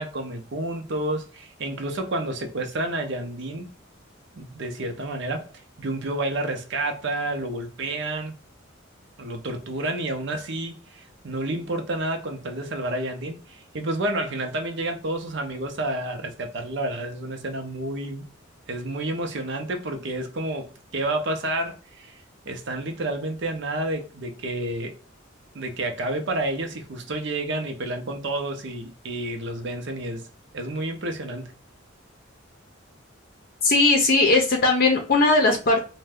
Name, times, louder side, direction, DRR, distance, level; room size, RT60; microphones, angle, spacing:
voice 1, 0.0-3.7 4.3-5.5 5.8-8.3 9.2-18.3 18.7-24.9 25.5-30.3 30.5-31.5, right 1 dB, 60° right, 0.6 m, -30 dB
voice 2, 33.6-35.8, left 2 dB, 45° left, 0.6 m, -19 dB
2.6 x 2.2 x 3.3 m
head